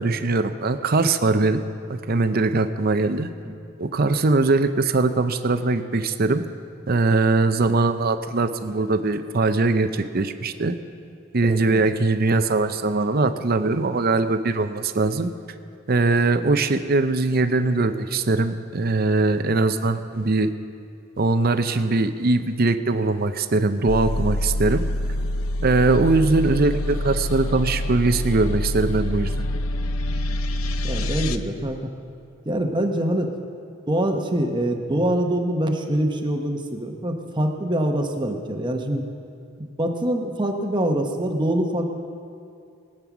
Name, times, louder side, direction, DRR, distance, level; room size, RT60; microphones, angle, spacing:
voice 1, 0.0-1.6 1.9-3.3 3.8-6.4 6.9-10.8 11.3-15.3 15.9-20.5 21.2-24.8 25.6-29.5, right 3 dB, 45° right, 10 dB, 0.6 m, -21 dB
voice 2, 11.5-11.8 30.8-31.8 32.4-33.3 33.9-39.0 39.6-41.9, right 1 dB, 20° right, 4 dB, 1.0 m, -24 dB
sound 1, 23.9-31.4, left 1 dB, 85° left, 0.6 m, -26 dB
20.0 x 8.9 x 6.0 m, 2.4 s
head